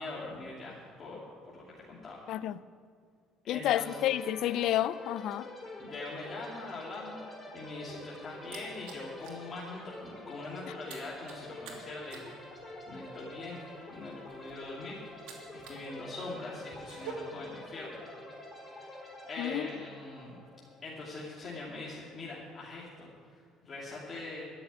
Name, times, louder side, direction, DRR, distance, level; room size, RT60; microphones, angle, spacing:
voice 1, 0.0-2.3 3.4-4.0 5.8-13.6 13.9-18.0 18.6-20.3 20.8-24.4, left 2 dB, 35° left, 2.6 m, -43 dB
voice 2, 3.5-5.5 19.4-19.7, left 12 dB, 65° left, 0.4 m, -30 dB
sound 1, 3.7-21.4, left 1 dB, 15° left, 4.3 m, -47 dB
sound 2, 7.7-9.5 9.8-10.0 10.3-15.9 16.2-17.1, right 9 dB, 90° right, 2.7 m, -49 dB
13.5 x 7.0 x 9.6 m
cardioid pair, 115°, 0 cm